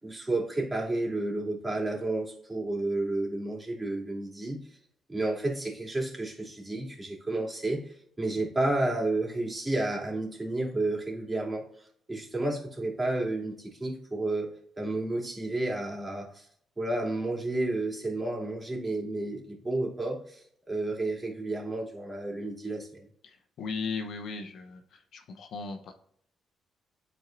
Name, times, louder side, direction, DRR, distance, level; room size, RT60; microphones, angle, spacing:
voice 1, 0.0-4.6 5.1-16.5 16.8-23.1, right 2 dB, 20° right, -3 dB, 2.9 m, -31 dB
voice 2, 23.2-24.8 25.1-25.9, left 4 dB, 65° left, 4 dB, 0.9 m, -37 dB
11.0 x 4.4 x 2.6 m, 0.66 s
hypercardioid pair, 45°, 0 cm